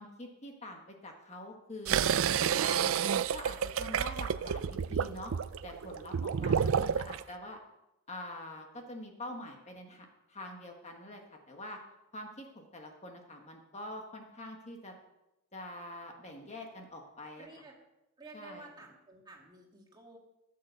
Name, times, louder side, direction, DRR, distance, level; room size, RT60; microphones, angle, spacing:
voice 1, 0.0-2.0 2.5-5.3 5.6-7.6 8.1-11.8 12.1-14.9 15.5-17.5 18.3-18.7, left 1 dB, 30° left, 2 dB, 1.4 m, -45 dB
sound 1, 1.9-7.2, right 7 dB, 65° right, 0.4 m, -30 dB
voice 2, 17.4-17.8 18.2-20.2, right 2 dB, 20° right, -1 dB, 2.2 m, -52 dB
14.5 x 6.7 x 6.9 m, 0.93 s
head